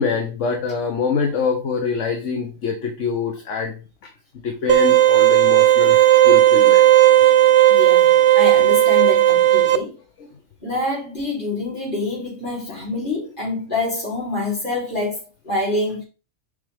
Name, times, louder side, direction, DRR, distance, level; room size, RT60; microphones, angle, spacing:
voice 1, 0.0-3.7 4.4-6.8, left 5 dB, 65° left, 1.3 m, -24 dB
sound 1, 4.7-9.8, right 13 dB, 65° right, 0.9 m, -13 dB
voice 2, 7.7-9.9 10.6-16.0, left 2 dB, 40° left, 3.6 m, -26 dB
7.0 x 5.1 x 3.4 m
omnidirectional pair, 1.4 m